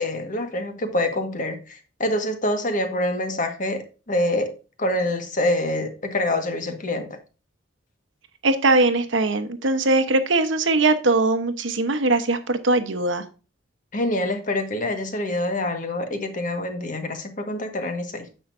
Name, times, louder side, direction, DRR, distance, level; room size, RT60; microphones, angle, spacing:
voice 1, 0.0-4.5 4.8-7.1 13.9-18.3, left 1 dB, 45° left, 1.5 m, -26 dB
voice 2, 8.4-13.2, right 2 dB, 75° right, 1.1 m, -21 dB
9.7 x 6.7 x 2.6 m
head